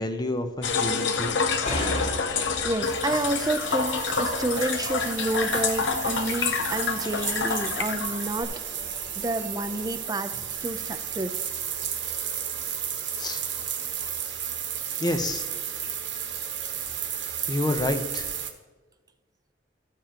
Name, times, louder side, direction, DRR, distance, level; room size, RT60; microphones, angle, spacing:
voice 1, 0.0-1.4 13.2-13.4 15.0-15.5 17.5-18.3, left 1 dB, 20° left, 7 dB, 0.8 m, -28 dB
sound 1, 0.6-8.4, left 5 dB, 80° left, 0.8 m, -28 dB
sound 2, 1.6-10.1, equal, 35° left, 2.0 m, -39 dB
voice 2, 2.0-8.5 9.2-10.3 10.6-11.3, right 2 dB, 20° right, 9 dB, 0.6 m, -29 dB
sound 3, 2.8-18.5, right 8 dB, 80° right, 1.1 m, -33 dB
14.5 x 7.1 x 2.9 m, 1.2 s
head